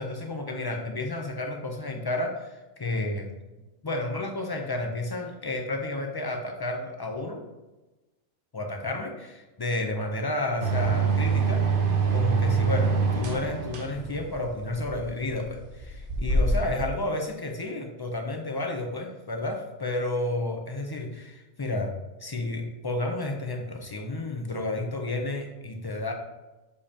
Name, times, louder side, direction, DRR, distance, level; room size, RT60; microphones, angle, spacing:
voice 1, 0.0-3.3 3.8-7.4 8.5-11.7 12.1-26.1, left 2 dB, 40° left, 2 dB, 0.3 m, -31 dB
sound 1, 10.6-16.9, right 4 dB, 50° right, 0.8 m, -25 dB
6.5 x 5.3 x 2.8 m, 1.1 s
omnidirectional pair, 1.4 m